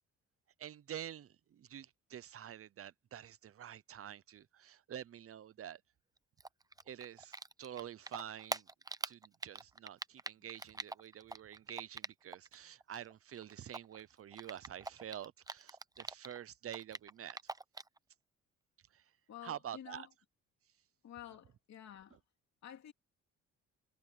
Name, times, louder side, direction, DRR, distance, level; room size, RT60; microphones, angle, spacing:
voice 1, 0.6-5.8 6.9-8.7 9.1-17.4 18.9-19.0 19.4-20.1, right 10 dB, 50° right, 0.8 m, -48 dB
Typing, 6.4-12.5 12.8-16.4 16.7-18.0, right 3 dB, 10° right, 0.7 m, -44 dB
voice 2, 19.3-20.1 21.0-22.2 22.6-22.9, left 10 dB, 65° left, 2.8 m, -51 dB
cardioid pair, 90°, 30 cm